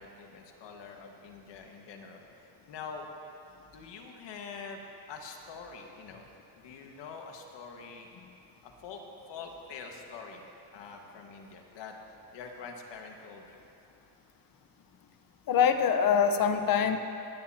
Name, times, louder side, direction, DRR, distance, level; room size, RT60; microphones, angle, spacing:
voice 1, 0.0-3.1 3.7-4.8 5.1-6.2 6.6-8.1 8.6-9.0 9.3-10.4 10.7-12.0 12.3-13.6, left 5 dB, 65° left, 2 dB, 1.7 m, -45 dB
voice 2, 15.5-17.0, left 7 dB, 45° left, 8 dB, 1.0 m, -24 dB
21.0 x 9.6 x 2.9 m, 2.8 s
supercardioid pair, 95°, 47 cm